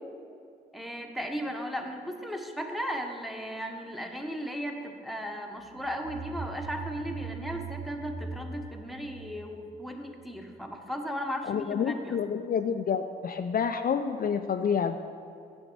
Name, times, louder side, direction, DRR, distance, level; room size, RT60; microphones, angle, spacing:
voice 1, 0.7-12.2, equal, ahead, 3 dB, 1.1 m, -36 dB
sound 1, 5.7-10.2, right 5 dB, 50° right, 0.9 m, -41 dB
voice 2, 11.4-15.0, left 7 dB, 45° left, 8 dB, 0.4 m, -28 dB
8.8 x 7.0 x 4.6 m, 2.5 s
supercardioid pair, 50°, 20 cm